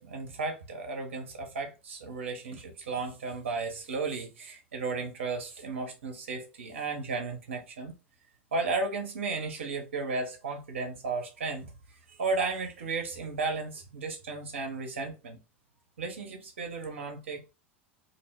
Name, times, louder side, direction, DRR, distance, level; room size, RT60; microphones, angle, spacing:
voice 1, 0.0-7.9 8.5-15.4 16.0-17.5, right 3 dB, 75° right, 0.7 m, -34 dB
2.4 x 2.1 x 3.3 m
figure-of-eight pair, 85°, 7 cm